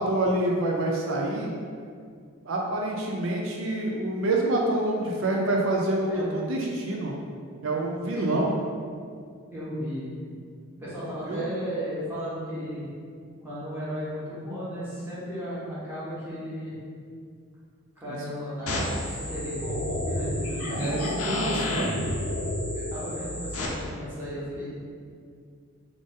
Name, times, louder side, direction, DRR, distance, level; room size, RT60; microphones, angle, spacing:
voice 1, 0.0-1.5 2.4-7.1 7.6-8.5 11.2-11.4 18.0-18.2 20.7-22.0, right 1 dB, 65° right, -1 dB, 0.4 m, -27 dB
voice 2, 9.5-10.1 10.8-12.9 13.4-16.7 18.0-20.3 20.6-20.7 21.3-21.9 22.7-24.7, equal, 10° right, -11 dB, 1.1 m, -34 dB
sound 1, 18.7-23.7, left 1 dB, 85° left, 0.6 m, -30 dB
3.5 x 2.6 x 3.6 m, 2.2 s
head